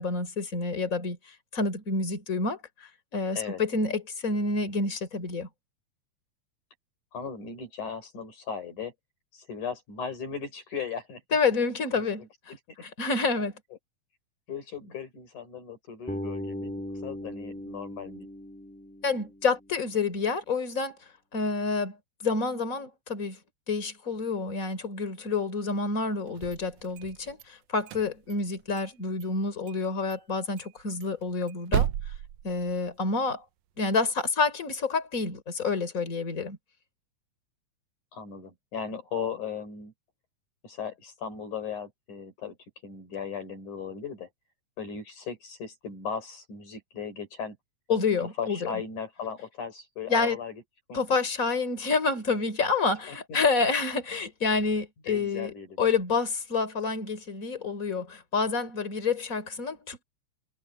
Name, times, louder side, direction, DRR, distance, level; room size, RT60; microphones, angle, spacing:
voice 1, 0.0-5.5 11.3-12.3 12.8-13.5 19.0-21.0 21.3-23.4 23.7-31.9 32.4-33.4 33.8-36.6 47.9-48.7 50.1-50.4 50.9-55.5 55.8-60.0, left 4 dB, 25° left, 4.1 m, -28 dB
voice 2, 7.1-8.9 9.3-11.2 11.9-12.1 14.5-16.7 17.0-18.3 38.1-39.9 40.6-42.6 42.8-44.3 44.8-47.6 48.4-50.6 50.9-51.0 53.1-53.4 55.0-55.8, left 6 dB, 75° left, 6.2 m, -37 dB
Bass guitar, 16.1-20.0, left 1 dB, 5° left, 3.8 m, -38 dB
sound 1, 26.3-27.5 27.8-28.9 29.2-29.3 29.7-29.8 30.1-30.2 30.6-33.2, right 11 dB, 70° right, 2.0 m, -34 dB
omnidirectional pair, 3.5 m